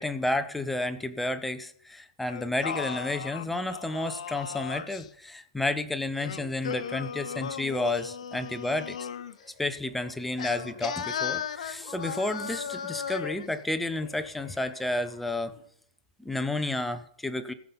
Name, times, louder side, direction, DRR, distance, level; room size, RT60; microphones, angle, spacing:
voice 1, 0.0-9.0 9.6-15.6 16.2-17.5, left 2 dB, 5° left, 10 dB, 0.4 m, -31 dB
Singing, 2.3-5.1 6.2-9.4 10.4-13.5, left 8 dB, 75° left, 0.8 m, -36 dB
sound 1, 9.1-11.3 11.8-15.7, left 4 dB, 25° left, 3.6 m, -53 dB
15.5 x 5.5 x 5.5 m, 0.66 s
hypercardioid pair, 165°, 4 cm